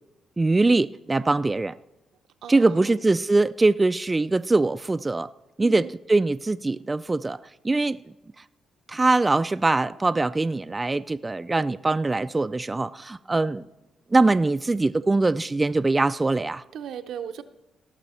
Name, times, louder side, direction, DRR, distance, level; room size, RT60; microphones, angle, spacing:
voice 1, 0.4-1.7 2.5-5.3 5.6-7.4 7.6-8.0 8.9-13.6 14.1-16.6, right 2 dB, 20° right, 11 dB, 0.3 m, -22 dB
voice 2, 2.4-2.9 5.6-5.9 16.7-17.4, right 8 dB, 75° right, 8 dB, 0.7 m, -37 dB
17.5 x 6.2 x 4.3 m, 0.97 s
cardioid pair, 75°, 0 cm